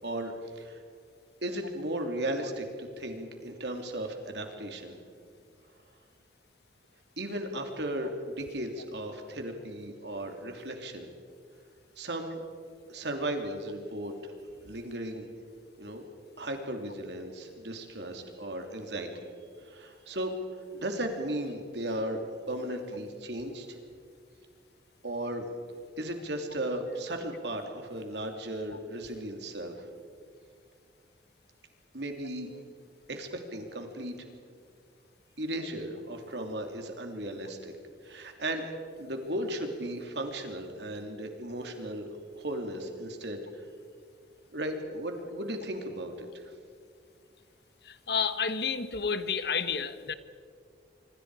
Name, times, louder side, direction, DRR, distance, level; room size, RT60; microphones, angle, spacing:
voice 1, 0.0-0.8 1.4-4.9 7.2-11.1 12.0-12.4 12.9-14.3 14.6-15.3 15.8-16.1 16.4-19.1 19.6-20.3 20.7-23.8 25.0-25.5 26.0-29.8 31.9-32.5 33.1-34.3 35.4-37.8 38.0-38.7 39.0-42.1 42.3-43.6 44.5-46.5, right 1 dB, 70° right, 4 dB, 3.0 m, -36 dB
voice 2, 47.8-50.1, left 6 dB, 60° left, 12 dB, 1.1 m, -31 dB
26.0 x 25.0 x 4.9 m, 2.2 s
head